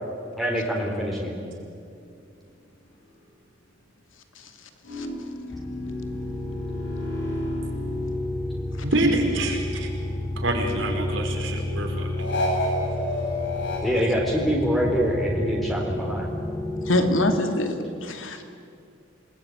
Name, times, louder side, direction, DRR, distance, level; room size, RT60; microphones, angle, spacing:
voice 1, 0.4-1.3 11.1-11.2 13.8-16.3, equal, ahead, -2 dB, 3.8 m, -25 dB
sound 1, 4.8-8.7 9.1-10.6 12.2-13.8, left 1 dB, 65° left, 7.6 m, -32 dB
sound 2, 5.5-17.4, left 1 dB, 20° left, 1.3 m, -31 dB
voice 2, 8.8-9.9 10.4-12.1, right 1 dB, 75° right, 2 dB, 5.3 m, -26 dB
voice 3, 16.9-18.4, left 1 dB, 85° left, 6 dB, 2.7 m, -24 dB
28.0 x 20.5 x 9.3 m, 2.5 s
head